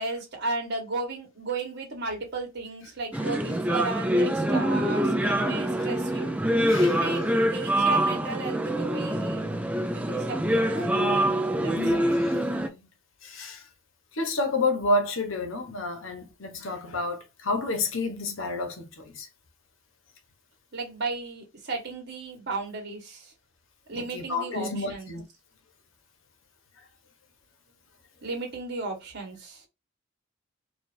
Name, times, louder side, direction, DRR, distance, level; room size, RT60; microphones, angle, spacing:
voice 1, 0.0-6.3 6.8-9.6 9.9-10.9 11.6-12.3 20.7-23.3 23.9-25.1 28.2-29.7, right 3 dB, 55° right, 1.5 m, -35 dB
sound 1, 3.1-12.7, right 1 dB, 5° right, 0.4 m, -25 dB
voice 2, 6.7-7.0 11.7-12.4 12.6-12.9 13.2-13.6 14.1-19.3 24.1-25.2, left 2 dB, 70° left, 1.1 m, -30 dB
4.6 x 2.6 x 2.6 m
head